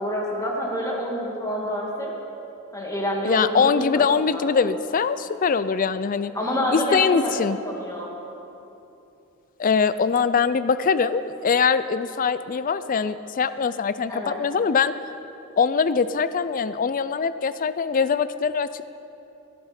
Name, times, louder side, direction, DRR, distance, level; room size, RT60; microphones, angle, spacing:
voice 1, 0.0-2.1 2.7-4.0 4.3-4.4 6.3-7.3 7.6-8.1 14.1-14.4, equal, 15° left, -2 dB, 2.1 m, -27 dB
voice 2, 3.2-6.3 6.7-7.6 9.6-14.9 15.6-18.9, left 5 dB, 40° left, 14 dB, 0.4 m, -22 dB
17.5 x 12.5 x 4.4 m, 2.9 s
head